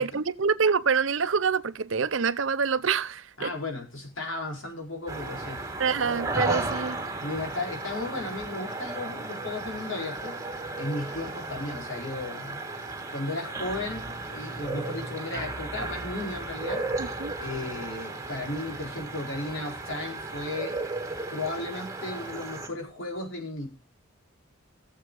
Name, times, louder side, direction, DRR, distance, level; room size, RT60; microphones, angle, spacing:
voice 1, 0.0-3.5 5.8-7.0 17.0-17.3, right 5 dB, 70° right, 0.6 m, -26 dB
voice 2, 3.4-5.6 7.2-10.4 10.8-12.6 13.1-16.8 17.4-20.8 21.3-23.7, left 2 dB, 75° left, 4.1 m, -35 dB
sound 1, 5.1-22.7, right 2 dB, 15° right, 1.7 m, -35 dB
15.5 x 7.4 x 3.7 m
head